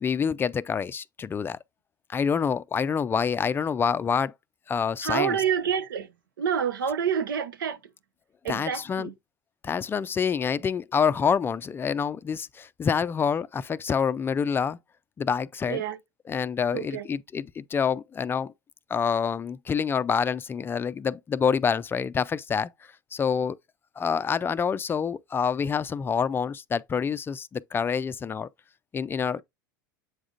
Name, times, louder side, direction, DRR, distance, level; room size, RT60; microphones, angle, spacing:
voice 1, 0.0-1.6 2.1-4.3 4.7-5.4 8.5-9.1 9.6-14.8 15.2-15.8 16.3-18.5 18.9-22.7 23.1-23.6 24.0-28.5 28.9-29.4, left 6 dB, 20° left, 0.4 m, -27 dB
voice 2, 5.0-6.1 6.4-7.8 8.4-9.1 15.7-16.0 16.7-17.1, right 8 dB, 85° right, 0.8 m, -27 dB
7.9 x 4.9 x 2.4 m
hypercardioid pair, 100°, 11 cm